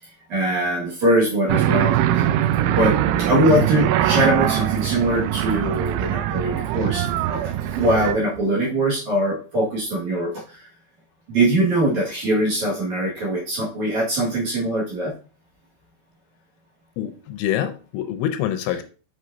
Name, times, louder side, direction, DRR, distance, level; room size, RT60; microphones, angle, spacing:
voice 1, 0.0-2.3 2.7-10.7 11.3-15.1, right 1 dB, 55° right, -4 dB, 2.3 m, -22 dB
sound 1, 1.5-8.1, right 12 dB, 85° right, 2.9 m, -22 dB
voice 2, 17.0-18.8, left 11 dB, 85° left, 8 dB, 3.0 m, -25 dB
7.7 x 6.1 x 2.6 m, 0.37 s
omnidirectional pair, 5.6 m